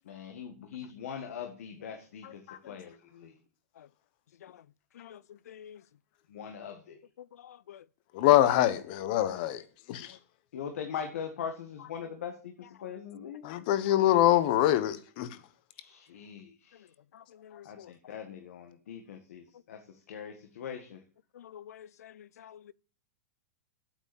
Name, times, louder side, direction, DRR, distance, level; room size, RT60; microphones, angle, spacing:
voice 1, 0.1-3.3 6.3-7.0 10.5-13.4 15.7-16.9 17.6-19.8 20.1-21.0, left 7 dB, 65° left, 1.9 m, -41 dB
voice 2, 5.5-5.8 7.5-7.8 17.5-17.9 21.4-22.1 22.4-22.6, left 9 dB, 85° left, 0.5 m, -49 dB
voice 3, 8.1-9.6 9.9-10.1 13.4-15.3, left 13 dB, 35° left, 1.1 m, -24 dB
8.8 x 8.1 x 7.2 m
supercardioid pair, 175°, 8 cm